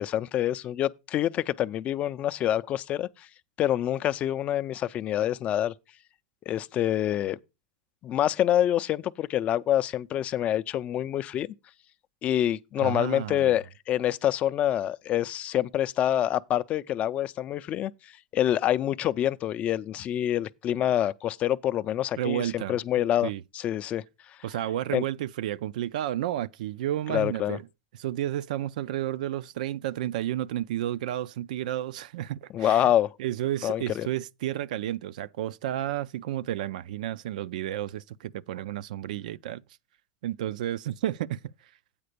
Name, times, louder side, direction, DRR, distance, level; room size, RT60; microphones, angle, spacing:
voice 1, 0.0-3.3 3.6-5.7 6.5-7.4 8.0-11.5 12.2-23.3 23.5-24.0 24.9-25.0 27.1-27.6 32.5-33.1 33.6-34.1, left 11 dB, 30° left, 0.4 m, -26 dB
voice 2, 12.8-13.6 22.2-22.8 23.2-23.4 24.4-27.7 27.9-32.9 33.2-39.6 40.2-41.4, right 12 dB, 80° right, 0.4 m, -31 dB
8.7 x 4.2 x 6.6 m
supercardioid pair, 135°, 4 cm